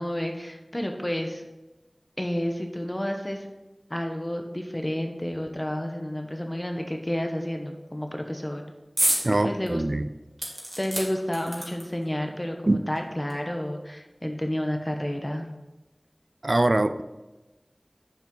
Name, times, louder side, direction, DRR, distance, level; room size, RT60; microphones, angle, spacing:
voice 1, 0.0-1.4 2.2-3.5 3.9-8.6 9.4-9.8 10.8-15.5, left 1 dB, 30° left, 3 dB, 1.1 m, -30 dB
sound 1, 9.0-9.3 9.7-9.8 10.4-12.1 12.9-13.0 13.3-13.4, right 1 dB, 50° right, 2.4 m, -28 dB
voice 2, 9.2-10.1 12.7-12.8 16.4-17.0, right 2 dB, 70° right, 11 dB, 0.4 m, -23 dB
9.0 x 7.3 x 3.9 m, 1.1 s
wide cardioid pair, 40°, 0 cm